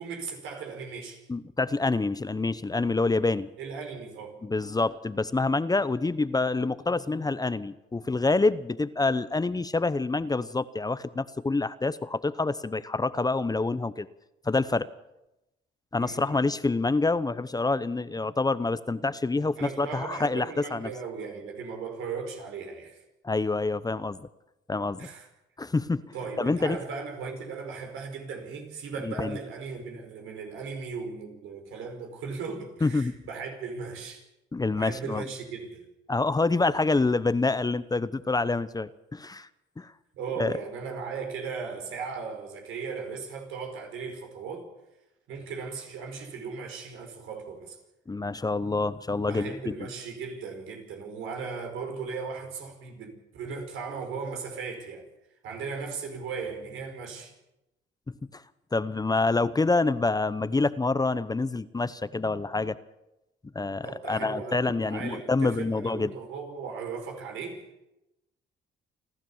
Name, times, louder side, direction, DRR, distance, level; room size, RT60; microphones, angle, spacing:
voice 1, 0.0-1.2 3.6-4.4 16.0-16.4 19.6-23.0 25.0-25.3 26.1-34.2 34.8-35.9 40.1-44.7 45.3-47.8 49.3-55.1 55.4-57.3 63.8-67.7, right 5 dB, 85° right, 5.1 m, -37 dB
voice 2, 1.3-3.5 4.4-14.1 14.4-14.9 15.9-20.9 23.2-24.2 24.7-25.1 25.6-26.8 29.0-29.4 32.8-33.1 34.5-35.2 36.1-39.5 39.8-39.9 40.4-40.5 48.1-49.7 58.1-58.4 58.7-62.8 63.5-66.1, left 3 dB, 20° left, 0.8 m, -27 dB
29.0 x 12.0 x 7.3 m
cardioid pair, 90°, 20 cm